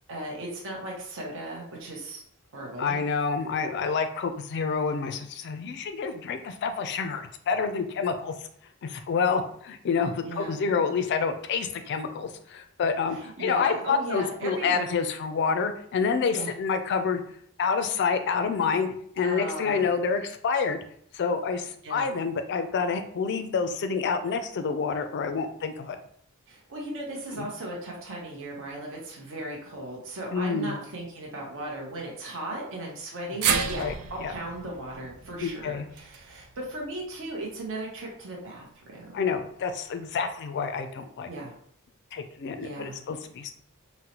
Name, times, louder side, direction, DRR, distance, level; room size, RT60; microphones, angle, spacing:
voice 1, 0.1-2.2 2.5-3.0 10.2-10.6 13.1-14.9 16.3-16.5 19.2-19.9 21.8-22.1 26.5-38.7 38.9-39.3 41.3-41.5 42.6-43.0, right 1 dB, 60° right, -2 dB, 0.7 m, -37 dB
voice 2, 2.8-8.3 8.8-17.2 17.6-20.8 21.1-26.0 27.3-27.5 30.3-30.7 33.8-33.9 34.2-34.3 35.4-35.9 39.1-41.3 42.1-43.5, left 5 dB, 50° left, 8 dB, 0.3 m, -28 dB
sound 1, 33.4-37.7 38.0-38.1 39.3-39.4, right 6 dB, 80° right, 0.4 m, -32 dB
3.9 x 2.0 x 2.8 m, 0.63 s
head